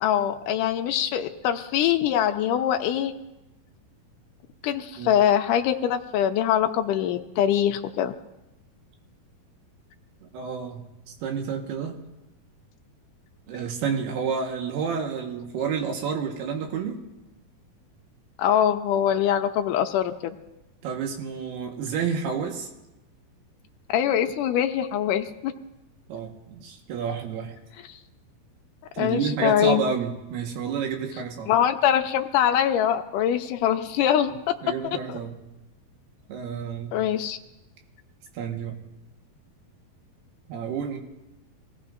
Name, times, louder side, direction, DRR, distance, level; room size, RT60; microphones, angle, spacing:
voice 1, 0.0-3.1 4.6-8.1 18.4-20.4 23.9-25.5 27.9-28.0 29.0-29.8 31.5-34.3 35.1-35.2 36.9-37.4, left 10 dB, 80° left, 5 dB, 1.9 m, -23 dB
voice 2, 10.2-10.9 11.2-12.0 13.5-17.0 20.8-22.7 26.1-27.6 28.9-31.5 34.6-35.4 36.3-37.0 38.3-38.8 40.5-41.0, right 6 dB, 90° right, 2 dB, 3.5 m, -30 dB
26.0 x 17.5 x 2.6 m, 0.96 s
omnidirectional pair, 4.5 m